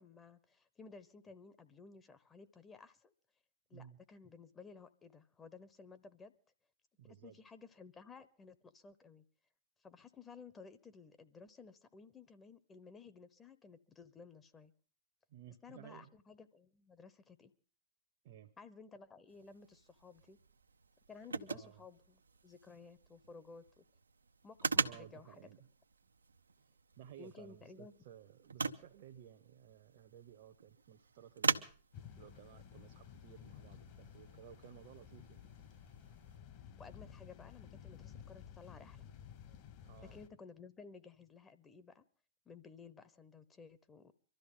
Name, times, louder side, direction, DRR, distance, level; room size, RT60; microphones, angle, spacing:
voice 1, 0.0-3.1 3.7-6.3 7.2-9.2 9.8-14.7 15.6-17.5 18.6-20.4 21.1-23.8 24.4-25.5 27.2-27.9 36.8-39.1 40.1-42.0 42.5-44.1, left 4 dB, 20° left, 1.0 m, -56 dB
voice 2, 7.0-7.4 15.3-16.1 18.2-18.5 21.5-21.8 24.8-25.7 26.6-31.7 32.2-35.5 39.8-40.2, right 10 dB, 50° right, 1.0 m, -56 dB
sound 1, 19.3-36.4, right 4 dB, 85° right, 0.8 m, -43 dB
sound 2, 31.9-40.3, left 9 dB, 40° left, 1.7 m, -54 dB
24.0 x 13.0 x 3.9 m
hypercardioid pair, 110°, 0 cm